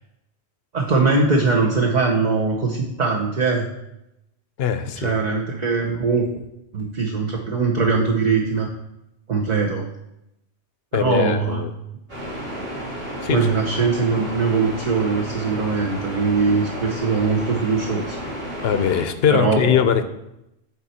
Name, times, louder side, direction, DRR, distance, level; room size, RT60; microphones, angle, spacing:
voice 1, 0.7-3.7 5.0-6.3 6.7-8.7 9.3-9.8 10.9-11.6 13.3-18.2 19.3-19.9, right 4 dB, 40° right, -1 dB, 0.9 m, -21 dB
voice 2, 4.6-5.1 10.9-11.7 13.2-13.4 18.6-20.1, left 8 dB, 65° left, 10 dB, 0.8 m, -20 dB
sound 1, 12.1-19.0, equal, 55° right, 2.7 m, -32 dB
9.4 x 4.4 x 4.3 m, 0.86 s
omnidirectional pair, 1.2 m